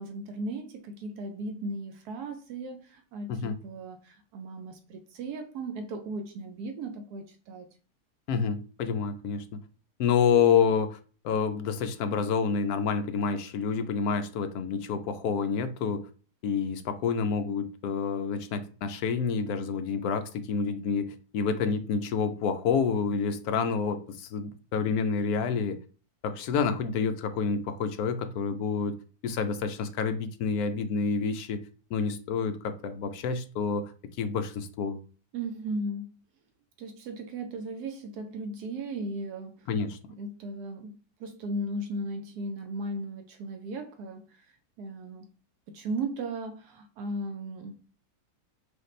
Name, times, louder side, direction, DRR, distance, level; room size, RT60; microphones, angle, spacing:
voice 1, 0.0-7.7 35.3-36.1 36.8-39.7 40.2-44.5 44.8-45.3 45.7-47.8, right 2 dB, 75° right, 1.1 m, -36 dB
voice 2, 8.3-9.4 10.0-11.0 11.2-16.1 16.4-25.8 26.2-29.0 29.2-31.6 31.9-33.9 34.2-35.0 39.7-40.0, left 6 dB, 70° left, 1.0 m, -28 dB
4.9 x 2.4 x 3.1 m
omnidirectional pair, 1.8 m